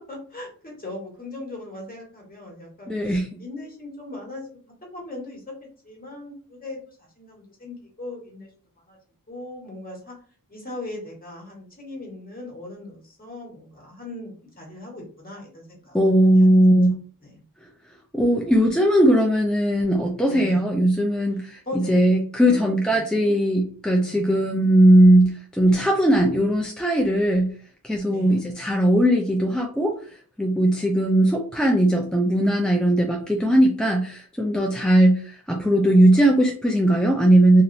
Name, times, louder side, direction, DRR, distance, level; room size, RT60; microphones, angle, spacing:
voice 1, 0.0-5.4 5.8-8.5 8.9-9.0 9.3-10.1 10.5-16.0 16.3-16.5 17.2-17.4 20.3-20.7 21.6-23.3 24.0-24.4 28.1-28.4, left 2 dB, 25° left, -1 dB, 1.4 m, -39 dB
voice 2, 2.9-3.4 15.9-17.0 18.1-21.6 21.9-27.5 27.8-29.9 30.4-37.6, right 1 dB, ahead, -1 dB, 0.4 m, -19 dB
3.0 x 2.6 x 2.6 m, 0.43 s
wide cardioid pair, 95°, 35 cm